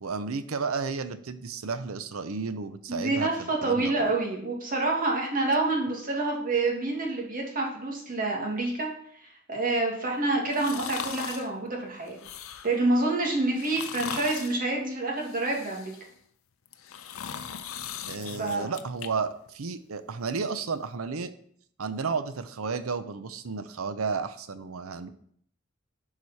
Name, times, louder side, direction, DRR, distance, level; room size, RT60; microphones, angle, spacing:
voice 1, 0.0-4.1 18.1-21.3 21.8-25.1, right 4 dB, 90° right, 12 dB, 0.7 m, -32 dB
voice 2, 2.9-8.9 9.2-12.2 12.6-16.0 18.4-18.7, right 2 dB, 40° right, -1 dB, 2.1 m, -27 dB
sound 1, 10.5-11.5 12.1-12.8 13.5-14.6 15.2-16.1 16.7-19.1 19.5-19.6, left 8 dB, 80° left, 0.6 m, -39 dB
11.5 x 4.9 x 4.2 m, 0.65 s
head